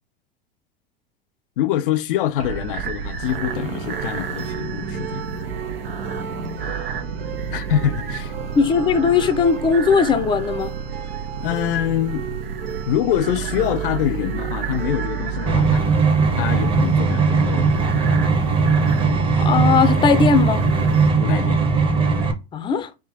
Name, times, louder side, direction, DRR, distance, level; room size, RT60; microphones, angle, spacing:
voice 1, 1.6-5.3 7.5-8.3 11.4-12.3 12.9-15.9 16.3-17.8 21.2-21.6, left 11 dB, 65° left, 0.5 m, -25 dB
sound 1, 2.4-21.1, right 5 dB, 80° right, 0.9 m, -30 dB
sound 2, 3.3-16.8, right 10 dB, 50° right, 1.7 m, -37 dB
voice 2, 8.5-10.7 19.4-20.7 22.5-22.9, left 5 dB, 15° left, 0.5 m, -18 dB
sound 3, 15.5-22.3, right 4 dB, 15° right, 0.9 m, -18 dB
3.5 x 2.8 x 4.7 m
hypercardioid pair, 95°, 29 cm